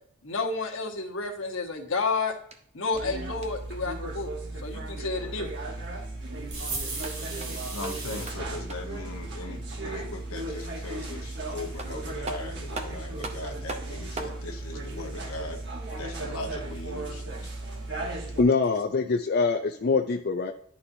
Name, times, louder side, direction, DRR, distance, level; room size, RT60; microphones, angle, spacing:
voice 1, 0.2-2.3 2.7-4.3 4.6-5.5, left 3 dB, 65° left, 2 dB, 1.2 m, -30 dB
sound 1, 2.5-3.8 6.8-9.0 11.3-11.4 11.8-14.4, right 2 dB, 30° right, 0.7 m, -41 dB
sound 2, 2.9-18.4, right 2 dB, 55° right, 1.2 m, -36 dB
sound 3, 6.5-8.3, right 3 dB, 90° right, 3.0 m, -36 dB
voice 2, 7.7-15.6 16.0-17.5, left 2 dB, 85° left, 3 dB, 1.0 m, -39 dB
voice 3, 18.4-20.5, left 4 dB, 50° left, 3 dB, 0.4 m, -24 dB
11.0 x 4.2 x 2.7 m, 0.63 s
head